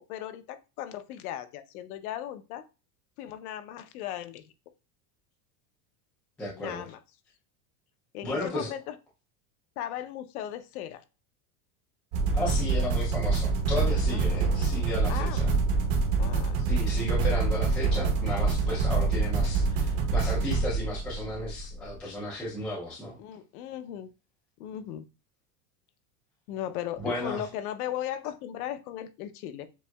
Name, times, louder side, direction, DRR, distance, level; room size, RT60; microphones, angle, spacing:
voice 1, 0.1-2.6 3.2-4.5 6.6-7.0 8.1-8.9 9.8-11.0 12.5-12.8 14.1-14.4 15.1-15.4 16.2-16.5 23.2-24.1 24.6-25.1 26.5-29.7, left 11 dB, 65° left, 10 dB, 0.7 m, -37 dB
voice 2, 6.4-6.9 8.2-8.7 12.3-15.5 16.7-23.2 27.0-27.5, left 1 dB, 5° left, -6 dB, 0.3 m, -34 dB
sound 1, 12.1-21.8, right 4 dB, 50° right, 1.0 m, -26 dB
7.2 x 2.7 x 2.2 m, 0.30 s
supercardioid pair, 165°, 48 cm